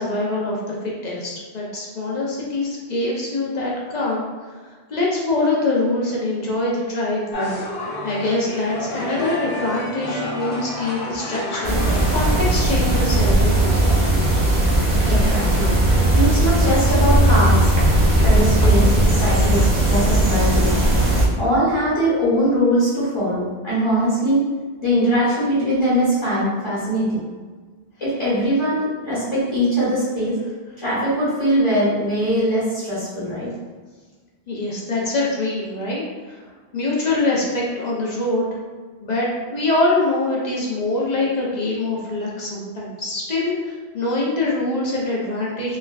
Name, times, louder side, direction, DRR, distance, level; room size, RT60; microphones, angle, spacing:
voice 1, 0.0-4.2 4.6-7.6 8.0-13.8 34.5-36.4 36.7-38.5 39.0-45.8, left 2 dB, 50° left, -4 dB, 0.6 m, -24 dB
sound 1, 7.3-12.7, left 1 dB, 85° left, 1.0 m, -30 dB
sound 2, 11.6-21.3, right 1 dB, 50° right, 0.6 m, -17 dB
voice 2, 15.1-15.7 16.1-17.7 18.2-20.7 21.4-24.4 24.8-27.2 28.0-30.4 30.8-33.5, equal, 30° left, -11 dB, 1.2 m, -21 dB
3.3 x 2.1 x 2.2 m, 1.4 s
omnidirectional pair, 1.1 m